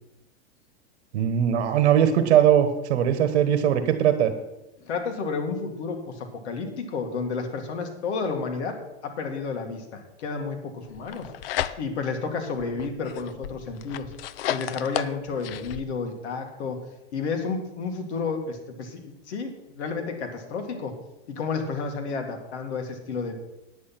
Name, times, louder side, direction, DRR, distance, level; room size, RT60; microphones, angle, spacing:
voice 1, 1.1-4.3, right 9 dB, 70° right, 9 dB, 1.3 m, -20 dB
voice 2, 4.8-8.7 9.0-11.3 11.8-14.1 14.5-16.8 17.1-21.0 21.3-23.3, left 4 dB, 75° left, 5 dB, 2.1 m, -31 dB
sound 1, 10.9-12.1 12.6-15.8, left 12 dB, 55° left, 0.6 m, -33 dB
9.6 x 8.6 x 5.8 m, 0.97 s
supercardioid pair, 160°, 34 cm